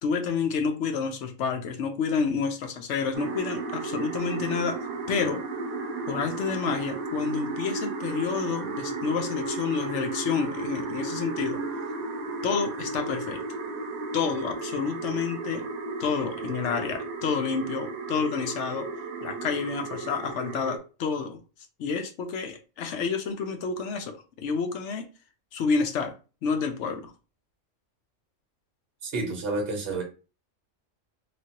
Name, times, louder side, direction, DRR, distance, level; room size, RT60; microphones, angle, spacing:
voice 1, 0.0-4.8 5.1-5.4 6.1-11.6 12.4-13.4 14.1-15.7 16.0-18.9 19.2-21.4 21.8-25.1 25.5-26.1 26.4-27.1, left 5 dB, 65° left, 0.8 m, -29 dB
sound 1, 3.1-20.8, right 3 dB, 85° right, 1.0 m, -34 dB
voice 2, 29.0-30.0, right 3 dB, 55° right, 1.2 m, -29 dB
3.1 x 2.5 x 2.8 m
omnidirectional pair, 1.4 m